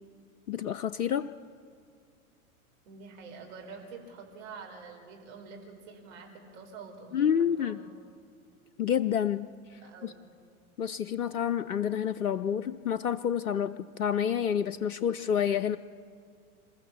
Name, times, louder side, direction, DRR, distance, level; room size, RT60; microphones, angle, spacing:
voice 1, 0.5-1.3 7.1-7.8 8.8-9.5 10.0-10.1 10.8-15.8, left 8 dB, 80° left, 12 dB, 0.7 m, -28 dB
voice 2, 2.8-8.0 9.8-10.2, right 4 dB, 55° right, 2 dB, 4.8 m, -47 dB
27.0 x 14.0 x 7.2 m, 2.3 s
figure-of-eight pair, 95°, 44 cm